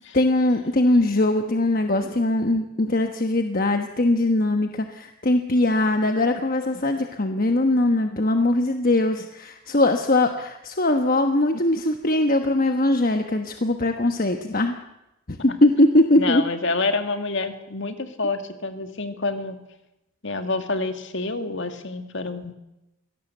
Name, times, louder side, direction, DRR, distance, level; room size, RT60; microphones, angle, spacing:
voice 1, 0.1-14.8 15.3-16.4, left 1 dB, 40° left, 6 dB, 1.2 m, -21 dB
voice 2, 16.2-19.6 20.2-22.5, left 3 dB, 55° left, 8 dB, 2.1 m, -28 dB
23.5 x 17.5 x 8.0 m, 0.91 s
head